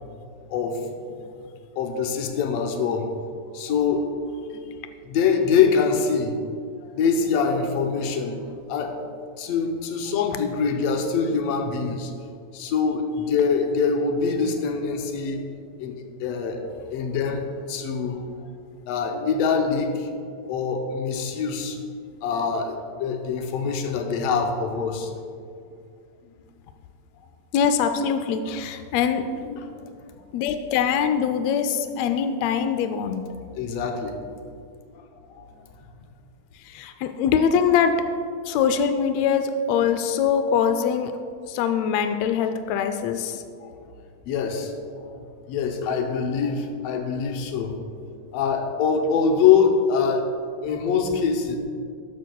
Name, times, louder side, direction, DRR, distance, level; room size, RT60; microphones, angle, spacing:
voice 1, 0.5-0.9 1.8-3.1 3.5-4.1 4.5-4.6 5.0-6.3 6.9-8.4 8.7-9.0 9.4-12.1 12.5-15.4 15.8-18.3 18.9-21.8 22.2-25.1 29.5-29.9 33.5-34.1 35.3-35.5 43.6-43.8 44.3-47.8 48.3-50.3 50.6-51.6, left 6 dB, 70° left, 4 dB, 1.7 m, -24 dB
voice 2, 27.5-29.3 30.3-33.2 36.6-38.0 38.4-41.1 41.5-43.4, left 7 dB, 90° left, 8 dB, 1.5 m, -23 dB
13.0 x 12.0 x 2.3 m, 2.3 s
omnidirectional pair, 3.5 m